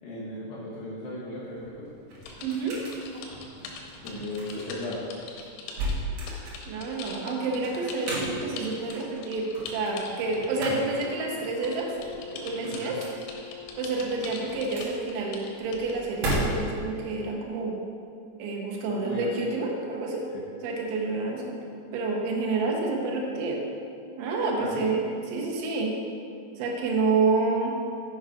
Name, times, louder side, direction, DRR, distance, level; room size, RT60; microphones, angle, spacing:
voice 1, 0.0-1.9 4.0-5.0 12.6-13.0 18.8-19.3 20.3-20.4 24.6-24.9, left 1 dB, 70° left, -7 dB, 2.9 m, -36 dB
sound 1, 1.4-16.9, right 1 dB, 55° right, 2.3 m, -36 dB
sound 2, 2.2-11.1 11.4-16.4, left 5 dB, 90° left, 3.7 m, -42 dB
voice 2, 2.4-2.8 6.7-11.9 12.3-13.0 13.8-17.8 18.4-20.3 20.6-23.6 24.2-25.9 26.6-27.8, right 3 dB, 75° right, -1 dB, 3.3 m, -29 dB
Wind instrument woodwind instrument, 10.6-15.3, left 4 dB, 55° left, 3.5 m, -45 dB
8.0 x 6.3 x 5.0 m, 2.4 s
omnidirectional pair, 5.8 m